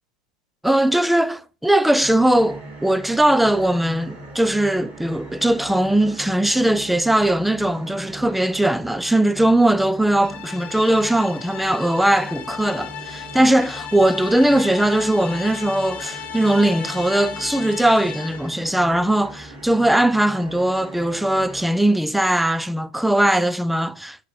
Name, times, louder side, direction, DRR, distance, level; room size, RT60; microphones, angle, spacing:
voice 1, 0.6-24.2, right 1 dB, 5° right, 0.3 m, -19 dB
sound 1, 2.0-21.6, right 2 dB, 35° right, 3.0 m, -40 dB
sound 2, 10.2-18.6, left 9 dB, 35° left, 1.0 m, -36 dB
5.9 x 4.1 x 4.5 m
hypercardioid pair, 95°, 4 cm